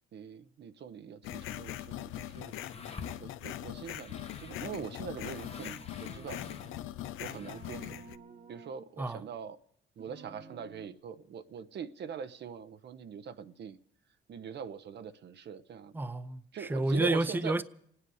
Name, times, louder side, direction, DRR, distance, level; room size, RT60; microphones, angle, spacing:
voice 1, 0.1-2.6 3.2-6.4 7.2-8.0 8.5-9.6 10.0-13.8 14.3-16.0 16.5-17.6, right 7 dB, 60° right, 0.8 m, -42 dB
sound 1, 1.2-8.2, left 13 dB, 90° left, 0.6 m, -41 dB
sound 2, 2.0-7.8, left 4 dB, 30° left, 1.1 m, -50 dB
sound 3, 4.5-5.0 5.6-6.9 7.2-8.8 10.0-10.9, right 4 dB, 40° right, 1.2 m, -52 dB
voice 2, 15.9-17.6, right 2 dB, 10° right, 0.7 m, -30 dB
28.0 x 9.8 x 4.8 m
cardioid pair, 90°, 20 cm